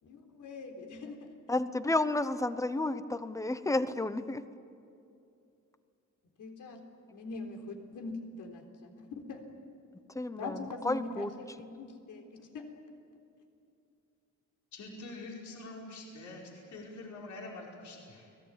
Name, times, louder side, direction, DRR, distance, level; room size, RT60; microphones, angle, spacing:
voice 1, 0.0-1.3 6.4-6.8 7.1-9.4 10.4-12.7, left 3 dB, 85° left, 3 dB, 3.8 m, -43 dB
voice 2, 1.5-4.4 10.2-10.6 10.8-11.3, left 2 dB, 10° left, 12 dB, 0.9 m, -31 dB
voice 3, 14.7-18.3, left 2 dB, 70° left, -2 dB, 5.0 m, -45 dB
30.0 x 20.0 x 9.0 m, 2.6 s
wide cardioid pair, 155°, 30 cm